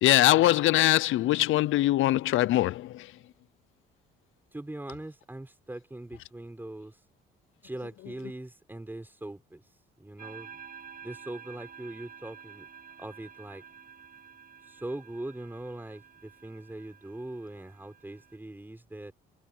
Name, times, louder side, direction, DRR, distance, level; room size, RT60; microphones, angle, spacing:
voice 1, 0.0-3.1, left 15 dB, 75° left, 0.6 m, -22 dB
voice 2, 4.5-7.0 7.6-9.6 10.0-10.6 11.0-12.7 13.0-13.6 14.7-19.1, right 1 dB, 10° right, 5.9 m, -41 dB
sound 1, 10.2-18.4, right 7 dB, 45° right, 7.6 m, -50 dB
cardioid pair, 105°, 20 cm